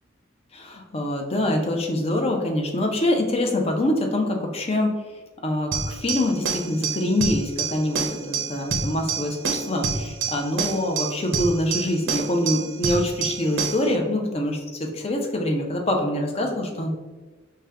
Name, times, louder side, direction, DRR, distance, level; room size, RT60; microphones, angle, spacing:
voice 1, 0.5-5.0 5.4-16.9, left 1 dB, 30° left, 2 dB, 0.5 m, -25 dB
sound 1, 5.7-13.9, right 5 dB, 65° right, 0.6 m, -28 dB
5.0 x 2.2 x 3.4 m, 1.3 s
head